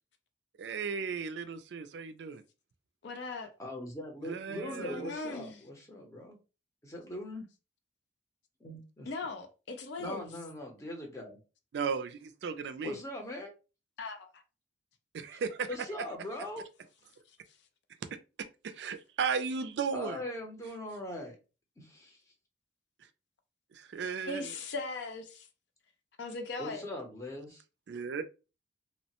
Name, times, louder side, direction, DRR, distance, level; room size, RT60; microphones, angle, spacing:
voice 1, 0.6-2.4 4.2-5.1 11.7-12.9 15.1-15.7 18.6-20.2 23.7-24.5 27.9-28.2, right 6 dB, 70° right, 0.3 m, -35 dB
voice 2, 3.0-3.5 4.8-5.6 9.1-10.3 14.0-14.4 24.3-25.5 26.2-26.9, left 3 dB, 70° left, 0.5 m, -39 dB
voice 3, 3.6-6.4 6.8-7.5 8.6-9.1 10.0-11.4 12.8-13.5 15.3-15.4 15.7-16.6 19.9-21.4 21.8-22.2 26.6-27.6, left 1 dB, 15° left, 0.7 m, -41 dB
2.9 x 2.1 x 2.8 m
head